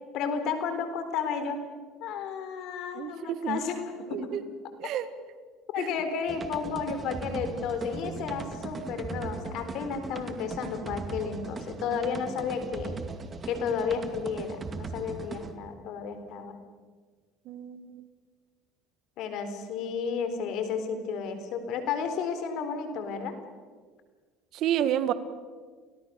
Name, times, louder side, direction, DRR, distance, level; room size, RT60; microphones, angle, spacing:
voice 1, 0.1-1.6 2.0-4.3 4.8-4.9 5.7-13.0 13.5-16.6 19.2-23.4, left 6 dB, 65° left, 9 dB, 3.8 m, -32 dB
voice 2, 2.9-3.6 4.1-4.4 4.8-5.1 5.8-5.9 17.4-18.0 24.5-25.1, right 10 dB, 60° right, 13 dB, 1.7 m, -30 dB
sound 1, 6.3-15.5, right 4 dB, 30° right, 2.3 m, -39 dB
28.0 x 18.0 x 6.9 m, 1.5 s
supercardioid pair, 90°, 0 cm